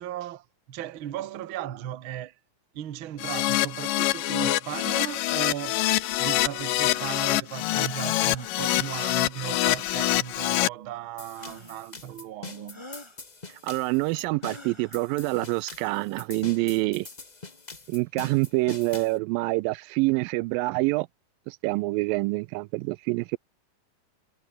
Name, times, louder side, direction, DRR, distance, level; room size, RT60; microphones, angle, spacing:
voice 1, 0.0-2.3 2.7-5.9 6.2-12.9, right 11 dB, 55° right, 1.5 m, -36 dB
Keyboard (musical), 3.2-10.7, left 16 dB, 75° left, 2.4 m, -25 dB
sound 1, 6.8-7.1 8.3-8.6 9.8-10.2 11.4-11.9 12.7-13.2 14.4-15.1, left 2 dB, 10° left, 1.7 m, -47 dB
sound 2, 11.2-19.2, left 3 dB, 55° left, 0.4 m, -43 dB
voice 2, 13.6-17.1 17.9-21.1 21.5-23.4, right 22 dB, 85° right, 2.3 m, -26 dB
omnidirectional pair, 4.0 m